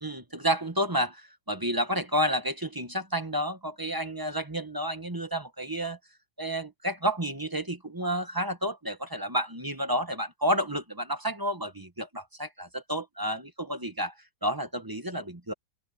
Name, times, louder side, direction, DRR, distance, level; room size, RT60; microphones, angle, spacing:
voice 1, 0.0-6.0 6.4-14.1 14.4-15.5, equal, 15° right, 1.0 m, -30 dB
open air
omnidirectional pair, 2.0 m